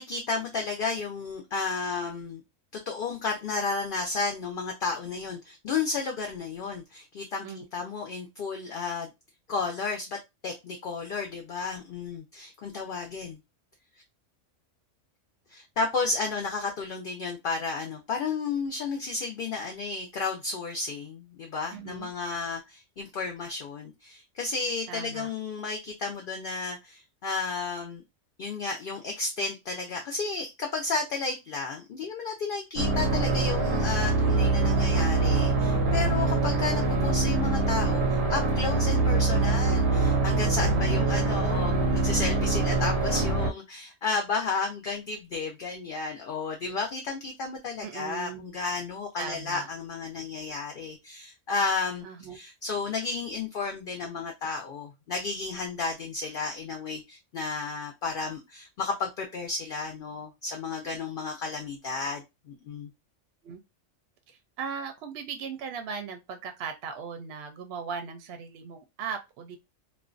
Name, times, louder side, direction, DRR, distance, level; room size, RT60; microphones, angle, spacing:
voice 1, 0.0-2.4 2.9-9.1 9.5-10.2 10.4-13.4 15.5-28.0 28.4-62.9, left 4 dB, 60° left, 0.6 m, -32 dB
voice 2, 21.7-22.1 24.9-25.3 40.8-41.1 47.8-48.5 49.2-49.7 52.0-52.4 63.4-63.6 64.3-69.6, right 6 dB, 65° right, 0.8 m, -38 dB
sound 1, 32.8-43.5, right 3 dB, 90° right, 1.0 m, -24 dB
2.4 x 2.1 x 2.4 m
omnidirectional pair, 1.3 m